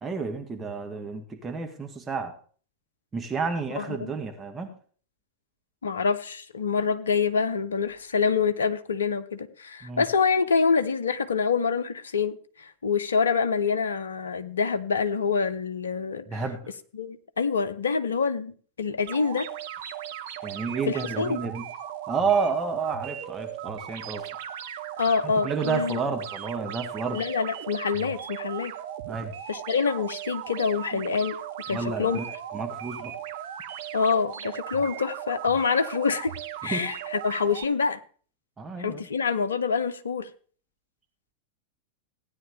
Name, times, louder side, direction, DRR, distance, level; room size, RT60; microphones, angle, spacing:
voice 1, 0.0-2.3 3.1-4.7 9.8-10.0 16.3-16.6 20.4-21.6 22.1-24.3 25.2-27.2 29.1-29.3 31.7-32.2 32.5-33.1 36.6-36.9 38.6-39.1, right 5 dB, 15° right, 1.7 m, -30 dB
voice 2, 3.8-4.1 5.8-16.4 16.9-19.5 20.9-21.4 25.0-26.0 27.1-28.7 29.5-31.4 31.7-32.2 33.9-36.3 36.6-38.0 38.8-40.3, left 5 dB, 70° left, 0.8 m, -26 dB
sound 1, 19.1-37.6, right 11 dB, 55° right, 1.1 m, -37 dB
16.0 x 9.7 x 3.4 m
figure-of-eight pair, 90°, 0 cm